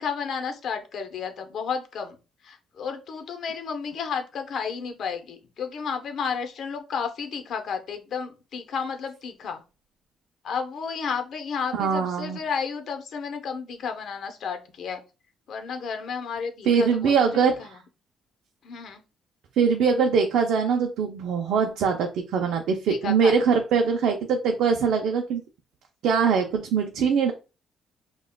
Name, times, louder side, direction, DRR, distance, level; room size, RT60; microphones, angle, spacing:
voice 1, 0.0-2.2 2.4-9.6 10.4-15.0 15.5-17.8 18.6-19.0 22.9-23.3, left 6 dB, 65° left, 6 dB, 0.8 m, -32 dB
voice 2, 11.7-12.4 16.7-17.7 19.6-25.4 26.0-27.3, right 6 dB, 80° right, 3 dB, 0.5 m, -22 dB
5.5 x 2.3 x 2.2 m, 0.31 s
cardioid pair, 90°, 0 cm